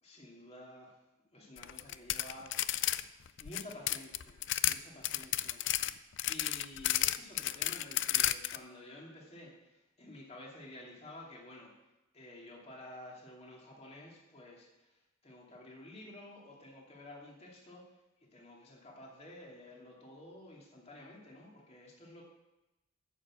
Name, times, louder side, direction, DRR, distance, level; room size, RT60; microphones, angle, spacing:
voice 1, 0.0-1.0 1.3-3.1 3.4-5.7 6.3-11.7 12.1-17.8 18.2-22.2, left 1 dB, 30° left, -2 dB, 2.4 m, -51 dB
sound 1, 1.6-3.0 3.3-4.8 5.0-8.6, left 14 dB, 60° left, 0.4 m, -32 dB
9.8 x 7.0 x 7.5 m, 1.0 s
head